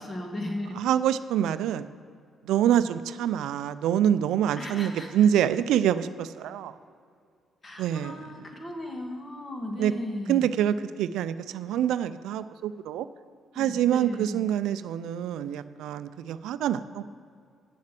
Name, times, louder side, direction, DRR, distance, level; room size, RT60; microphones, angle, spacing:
voice 1, 0.0-0.8 2.7-2.8 4.6-5.1 7.6-10.4 13.5-14.4, left 1 dB, 30° left, 2 dB, 1.8 m, -36 dB
voice 2, 0.8-1.9 2.4-6.7 7.8-8.2 9.8-9.9 10.3-13.1 13.5-17.0, right 10 dB, 85° right, 13 dB, 0.4 m, -26 dB
7.8 x 7.4 x 7.5 m, 2.3 s
cardioid pair, 90°, 0 cm